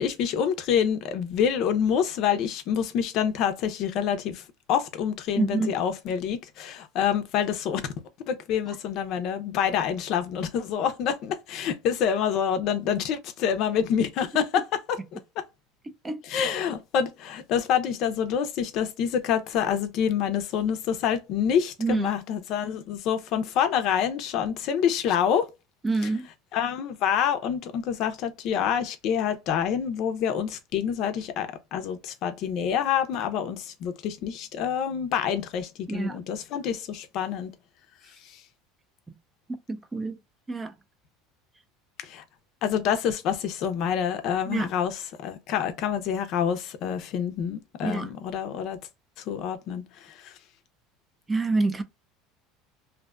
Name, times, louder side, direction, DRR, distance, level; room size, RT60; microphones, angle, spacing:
voice 1, 0.0-4.4 4.7-7.9 8.3-15.4 16.2-25.5 26.5-37.5 42.0-42.2 42.6-48.8 49.3-50.3, left 8 dB, 50° left, 0.5 m, -27 dB
voice 2, 5.4-5.7 16.0-16.2 21.8-22.1 25.8-26.3 35.9-36.2 39.7-40.2 40.5-40.7 44.5-44.7 47.8-48.1 51.3-51.8, right 3 dB, 15° right, 0.4 m, -26 dB
2.5 x 2.2 x 2.3 m
supercardioid pair, 140°, 0 cm